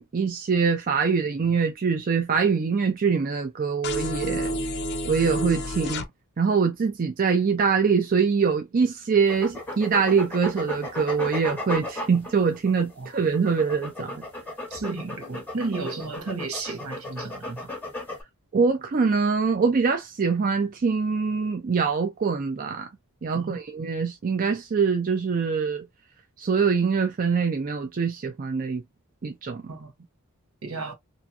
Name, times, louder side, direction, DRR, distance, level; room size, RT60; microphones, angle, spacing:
voice 1, 0.0-4.5 5.0-6.0 6.4-14.2 18.5-22.9 23.2-25.9 26.4-28.8 29.2-29.6, right 5 dB, 40° right, 0.4 m, -24 dB
sound 1, 3.8-6.0, equal, 50° left, 0.5 m, -29 dB
sound 2, 9.3-18.2, left 1 dB, 10° left, 0.9 m, -35 dB
voice 2, 14.7-17.7 23.3-23.6 29.7-29.9 30.6-30.9, right 3 dB, 75° right, 0.9 m, -33 dB
2.7 x 2.5 x 2.3 m
head